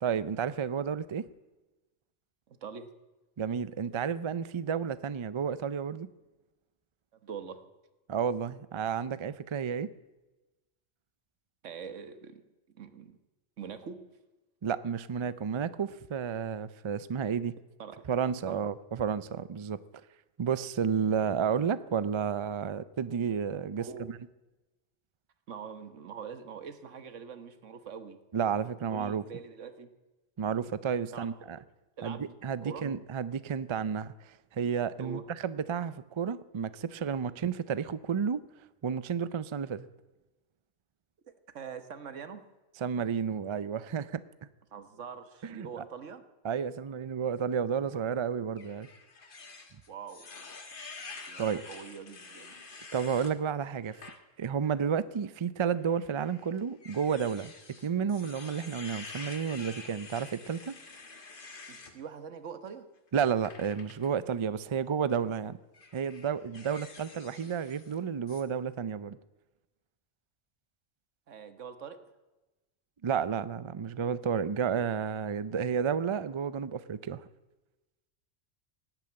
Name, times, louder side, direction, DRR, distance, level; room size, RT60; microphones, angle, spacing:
voice 1, 0.0-1.3 3.4-6.1 8.1-9.9 14.6-17.6 18.1-19.8 20.4-24.2 28.3-29.2 30.4-31.6 32.0-38.4 38.8-39.9 42.8-44.2 45.4-45.7 46.4-48.9 51.4-51.6 52.9-54.0 54.4-57.5 57.8-60.8 63.1-65.6 65.9-69.2 73.0-77.2, right 7 dB, 50° right, 16 dB, 0.3 m, -31 dB
voice 2, 2.5-2.9 7.2-7.6 11.6-12.4 12.7-13.2 13.6-14.0 17.8-18.0 18.5-18.6 23.8-24.1 25.5-28.2 28.9-29.9 31.1-31.3 32.0-32.2 32.6-32.8 35.0-35.2 41.5-42.4 44.7-46.2 49.9-50.3 51.3-52.5 61.7-62.8 71.3-72.0, right 6 dB, 85° right, 10 dB, 1.5 m, -43 dB
sound 1, 48.6-53.3 53.8-54.2 54.6-54.8 55.8-62.0 63.4-64.1 65.0-65.3 65.7-68.0 68.3-68.4, left 3 dB, 45° left, 1.6 m, -48 dB
18.0 x 9.0 x 8.8 m, 1.1 s
omnidirectional pair, 1.2 m